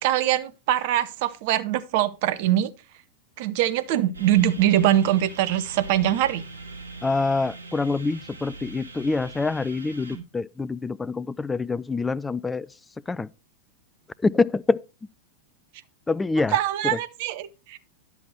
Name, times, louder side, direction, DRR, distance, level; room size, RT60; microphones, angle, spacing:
voice 1, 0.0-2.7 3.4-6.4 10.1-10.2 16.5-17.8, right 12 dB, 50° right, 0.7 m, -23 dB
sound 1, 4.1-10.2, right 3 dB, 75° right, 2.3 m, -41 dB
voice 2, 7.0-12.7 13.1-13.3 14.2-14.8 16.1-16.6 16.8-17.0, left 3 dB, 10° left, 0.4 m, -25 dB
10.5 x 7.0 x 4.3 m
figure-of-eight pair, 90°, 0 cm